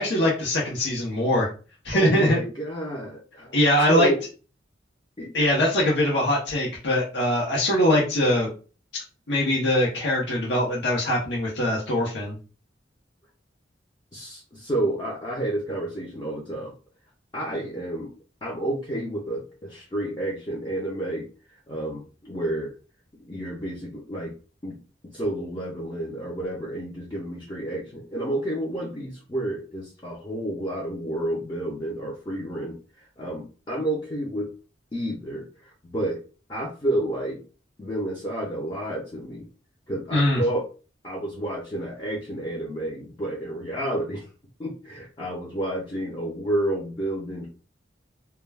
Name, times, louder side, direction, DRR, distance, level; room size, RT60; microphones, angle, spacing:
voice 1, 0.0-1.5 1.8-2.4 3.5-4.1 5.3-8.5 9.3-12.4 40.1-40.4, left 1 dB, 65° left, -4 dB, 0.7 m, -22 dB
voice 2, 1.9-3.5 3.9-4.2 5.2-5.3 14.1-16.7 17.3-18.1 18.4-22.7 23.1-24.3 24.6-24.8 25.1-34.5 34.9-36.2 36.5-37.4 37.8-39.5 39.9-40.7 41.0-44.3 44.6-47.5, right 1 dB, 25° left, -4 dB, 0.5 m, -30 dB
2.2 x 2.2 x 3.2 m, 0.35 s
head